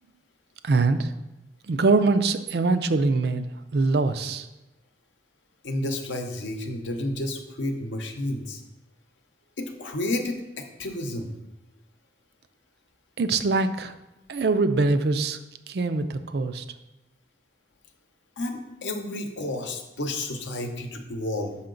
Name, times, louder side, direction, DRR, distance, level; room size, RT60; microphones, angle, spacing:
voice 1, 0.6-1.1 1.7-4.5 13.2-13.9 14.3-15.4 15.7-16.6, right 3 dB, 55° right, 9 dB, 0.4 m, -23 dB
voice 2, 5.6-8.6 9.6-11.3 18.4-21.6, left 1 dB, 80° left, 5 dB, 0.8 m, -31 dB
5.7 x 5.6 x 3.8 m, 0.99 s
head